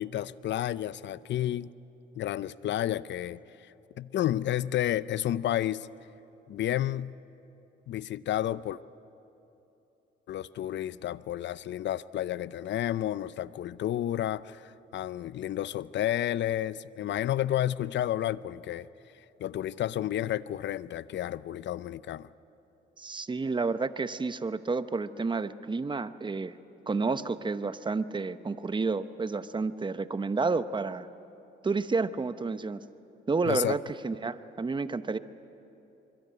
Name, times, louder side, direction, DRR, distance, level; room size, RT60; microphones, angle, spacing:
voice 1, 0.0-1.7 2.2-5.9 6.5-7.2 7.9-8.8 10.3-18.9 19.4-22.3 33.4-33.7, left 12 dB, 65° left, 17 dB, 0.6 m, -31 dB
voice 2, 23.0-26.6 26.9-31.1 31.6-32.8 33.3-35.2, right 4 dB, 25° right, 12 dB, 0.9 m, -30 dB
24.5 x 23.5 x 9.5 m, 3.0 s
cardioid pair, 90°, 20 cm